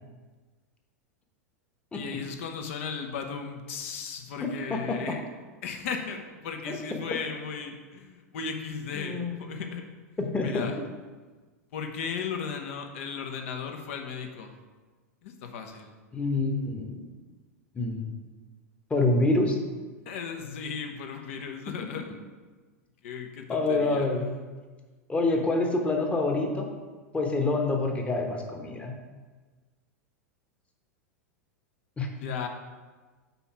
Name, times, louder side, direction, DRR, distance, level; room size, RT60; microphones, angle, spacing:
voice 1, 1.9-5.2 5.6-9.8 10.4-10.7 11.7-14.5 15.2-15.9 20.1-22.1 23.0-24.1 32.2-32.5, left 6 dB, 60° left, 4 dB, 0.9 m, -36 dB
voice 2, 8.9-9.3 10.2-10.7 16.1-17.0 17.7-18.1 18.9-19.6 23.5-24.3 25.1-26.7 27.1-28.9 32.0-32.1, left 2 dB, 15° left, 2 dB, 1.0 m, -26 dB
5.5 x 4.3 x 5.7 m, 1.4 s
figure-of-eight pair, 90°, 8 cm